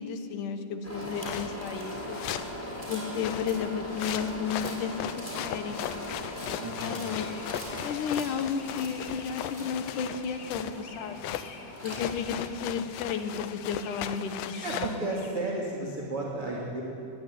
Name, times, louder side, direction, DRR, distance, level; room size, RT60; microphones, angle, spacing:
voice 1, 0.0-2.2 2.9-5.8 6.8-7.3 7.8-11.3 11.8-15.0, left 6 dB, 60° left, 7 dB, 2.3 m, -33 dB
sound 1, 0.8-12.5, left 1 dB, 5° left, 5.4 m, -40 dB
sound 2, 1.1-1.5 2.1-2.6 3.1-10.8 11.2-11.5 11.8-15.0, left 12 dB, 80° left, 2.9 m, -38 dB
Chirp tweet, 6.3-15.3, left 4 dB, 45° left, 2.3 m, -49 dB
voice 2, 6.6-7.0 14.6-16.8, right 2 dB, 35° right, -3 dB, 3.0 m, -33 dB
21.5 x 20.0 x 9.4 m, 2.6 s
omnidirectional pair, 5.1 m